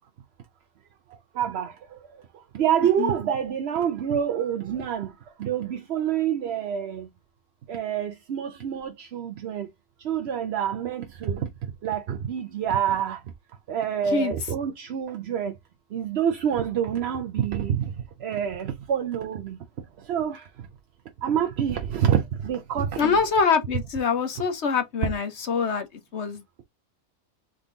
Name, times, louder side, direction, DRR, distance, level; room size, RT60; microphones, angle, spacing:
voice 1, 1.3-2.0 2.5-5.1 5.4-7.1 7.7-9.7 10.0-13.2 13.7-15.5 15.9-17.9 18.2-19.6 20.0-20.5 21.2-23.2 24.4-24.5 25.0-25.1, right 9 dB, 60° right, 0.8 m, -27 dB
voice 2, 23.0-25.9 26.1-26.6, left 5 dB, 55° left, 1.2 m, -24 dB
3.7 x 3.6 x 3.8 m
omnidirectional pair, 1.4 m